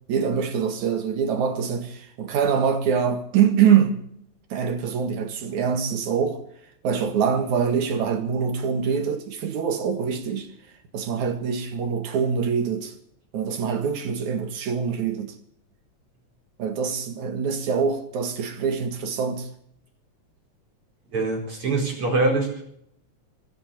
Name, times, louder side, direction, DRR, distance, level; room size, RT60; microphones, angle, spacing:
voice 1, 0.1-4.0 4.5-6.4 6.8-10.5 10.9-12.9 13.3-15.3 16.6-19.5, right 7 dB, 75° right, 3.1 m, -24 dB
voice 2, 21.1-22.6, right 3 dB, 45° right, 5.7 m, -24 dB
24.0 x 8.0 x 6.8 m
omnidirectional pair, 3.4 m